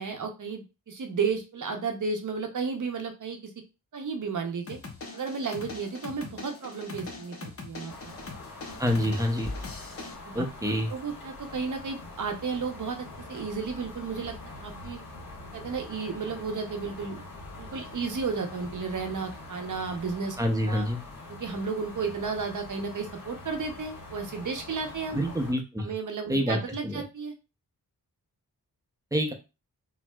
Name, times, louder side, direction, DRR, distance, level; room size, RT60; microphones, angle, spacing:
voice 1, 0.0-3.5 3.9-4.8 5.1-8.1 10.2-14.3 14.6-15.0 15.5-17.2 17.6-20.4 20.7-20.9 21.3-25.2 25.8-27.3, right 5 dB, 55° right, 5 dB, 0.7 m, -33 dB
sound 1, 4.7-10.1, left 3 dB, 40° left, 0.7 m, -42 dB
sound 2, 7.9-25.5, left 2 dB, 70° left, 1.2 m, -43 dB
voice 2, 8.8-9.5 10.3-10.9 20.4-21.0 25.1-25.9 26.3-26.6 26.8-27.0 29.1-29.3, equal, 10° right, 4 dB, 0.5 m, -27 dB
4.3 x 2.0 x 2.2 m, 0.28 s
wide cardioid pair, 115°, 37 cm